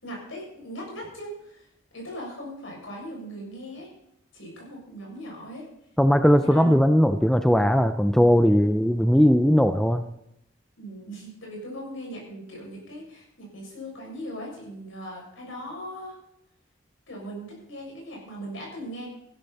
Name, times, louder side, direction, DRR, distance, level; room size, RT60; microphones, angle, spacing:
voice 1, 0.0-1.7 1.9-3.9 4.3-5.6 6.4-6.8 8.5-8.9 10.8-16.1 17.1-19.1, equal, 85° left, -2 dB, 6.8 m, -39 dB
voice 2, 6.0-10.0, equal, ahead, 9 dB, 0.5 m, -19 dB
15.5 x 12.0 x 4.2 m, 0.77 s
head